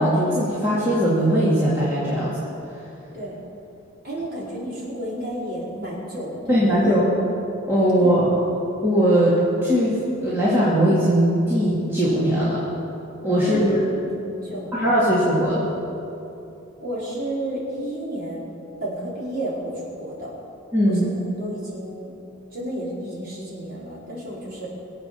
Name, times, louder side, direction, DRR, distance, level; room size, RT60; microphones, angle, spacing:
voice 1, 0.0-2.4 6.5-7.0 7.7-8.2 8.8-12.6 13.2-13.8 14.7-15.6 20.7-21.0, equal, 10° right, -10 dB, 2.7 m, -19 dB
voice 2, 4.0-6.8 8.0-8.1 13.4-13.7 14.1-14.9 16.8-18.5 18.8-20.3 20.8-21.1 21.4-22.1 22.5-24.7, right 1 dB, 45° right, -6 dB, 4.8 m, -32 dB
23.0 x 8.1 x 7.1 m, 2.8 s
head